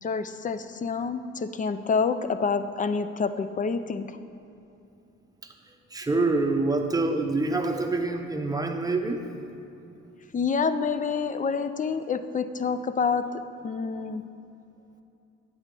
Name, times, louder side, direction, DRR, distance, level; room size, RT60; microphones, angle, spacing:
voice 1, 0.0-4.1 10.3-13.2 13.6-14.2, left 5 dB, 25° left, 11 dB, 0.4 m, -27 dB
voice 2, 5.9-9.2, right 3 dB, 10° right, 4 dB, 0.7 m, -26 dB
8.8 x 8.0 x 3.7 m, 2.8 s
cardioid pair, 90°, 30 cm